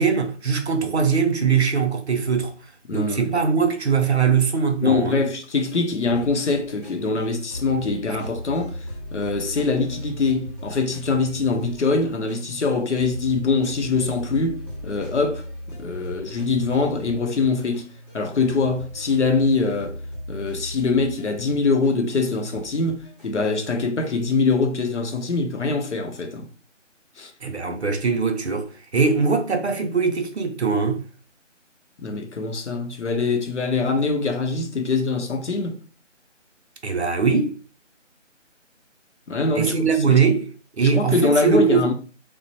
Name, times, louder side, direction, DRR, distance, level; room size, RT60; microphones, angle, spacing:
voice 1, 0.0-2.5 2.9-5.2 27.4-31.0 36.8-37.6 39.6-40.5 40.8-41.9, right 5 dB, 60° right, 0.6 m, -21 dB
voice 2, 2.9-3.3 4.8-8.9 9.1-17.9 18.1-20.0 20.3-26.5 27.2-27.3 32.0-35.8 39.3-40.2 40.8-41.9, left 3 dB, 65° left, 0.6 m, -23 dB
sound 1, 6.0-23.6, equal, 30° left, 0.9 m, -37 dB
3.1 x 2.0 x 2.8 m
figure-of-eight pair, 170°, 38 cm